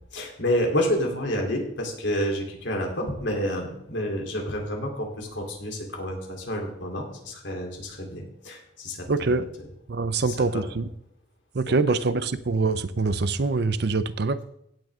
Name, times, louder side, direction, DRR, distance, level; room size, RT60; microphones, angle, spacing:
voice 1, 0.1-9.7 10.1-10.6 11.7-12.0, equal, 75° left, 1 dB, 3.4 m, -29 dB
voice 2, 9.1-9.5 9.9-10.8 11.5-14.4, right 3 dB, 60° right, 14 dB, 0.6 m, -24 dB
16.5 x 8.9 x 3.7 m, 0.77 s
head